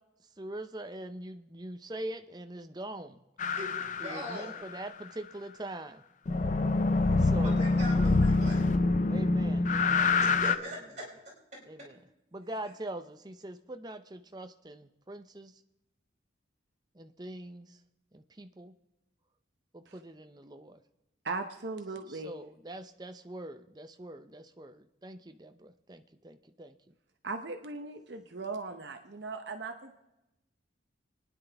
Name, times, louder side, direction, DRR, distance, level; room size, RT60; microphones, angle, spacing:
voice 1, 0.4-3.2 4.0-6.0 7.2-7.6 7.9-8.2 9.1-10.4 11.7-12.0 12.3-15.6 16.9-17.8 18.1-18.7 19.7-20.8 22.1-26.9, right 1 dB, 20° right, 8 dB, 0.6 m, -43 dB
sound 1, 3.4-4.8 6.3-10.5, left 3 dB, 40° left, 0.5 m, -26 dB
voice 2, 3.6-4.6 7.4-8.7 10.2-11.0, equal, 35° right, -5 dB, 4.7 m, -41 dB
voice 3, 21.2-22.3 27.2-30.0, right 3 dB, 60° right, 6 dB, 0.8 m, -38 dB
29.5 x 10.0 x 3.4 m, 0.96 s
head